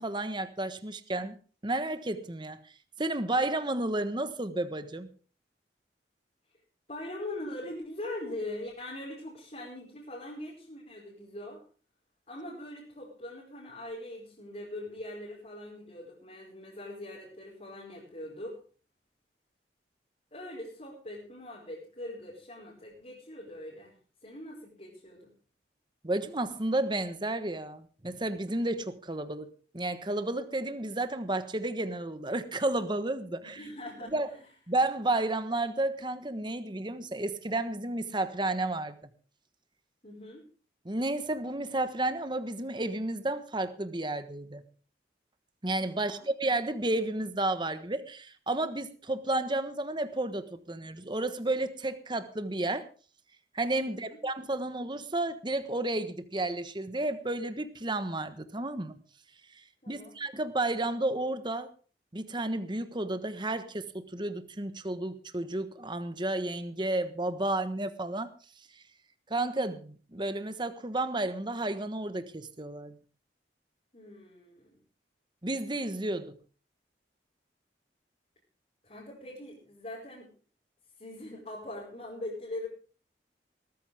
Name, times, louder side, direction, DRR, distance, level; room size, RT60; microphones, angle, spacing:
voice 1, 0.0-1.4 1.6-2.7 3.0-5.1 26.0-29.5 29.7-33.6 34.1-34.3 34.7-39.1 40.8-44.6 45.6-52.9 53.5-59.0 59.5-61.7 62.1-68.3 69.3-72.9 75.4-76.3, right 2 dB, 25° right, 10 dB, 1.3 m, -32 dB
voice 2, 6.9-11.6 12.3-18.6 20.3-25.3 33.4-34.1 40.0-40.4 45.9-46.3 53.9-54.2 59.8-60.2 73.9-74.8 78.8-80.3 81.0-82.7, left 1 dB, 40° left, -4 dB, 5.2 m, -42 dB
19.5 x 14.0 x 3.5 m, 0.38 s
head